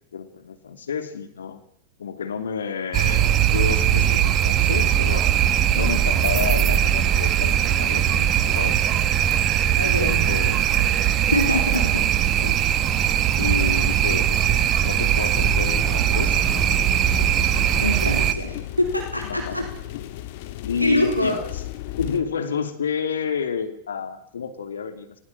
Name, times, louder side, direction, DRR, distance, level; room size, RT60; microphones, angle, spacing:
voice 1, 0.1-1.6 2.0-5.3 5.7-9.0 9.7-11.0 11.7-12.1 12.4-12.6 13.4-18.3 19.3-19.7 20.6-21.5 22.0-25.2, left 7 dB, 65° left, 9 dB, 2.7 m, -31 dB
sound 1, 2.9-18.3, right 10 dB, 35° right, 1.8 m, -20 dB
voice 2, 9.7-10.2 11.3-12.0 17.8-19.6 20.8-21.4, left 1 dB, 90° left, 3 dB, 4.7 m, -24 dB
sound 2, 15.3-22.2, left 14 dB, 50° left, 2.6 m, -34 dB
29.5 x 22.0 x 7.6 m, 0.72 s
figure-of-eight pair, 90°, 0 cm